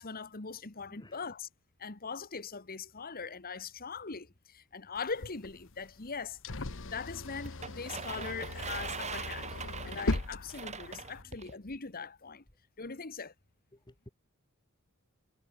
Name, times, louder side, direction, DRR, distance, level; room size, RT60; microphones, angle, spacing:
voice 1, 0.0-1.5 1.8-6.4 6.8-9.6 9.8-12.4 12.8-13.3, left 5 dB, 40° left, 1.5 m, -41 dB
voice 2, 0.9-1.3 11.2-11.4 13.7-14.1, left 1 dB, 20° left, 1.8 m, -55 dB
sound 1, 5.0-11.2, left 2 dB, 60° left, 1.2 m, -39 dB
sound 2, 7.4-11.5, right 5 dB, 30° right, 2.9 m, -42 dB
head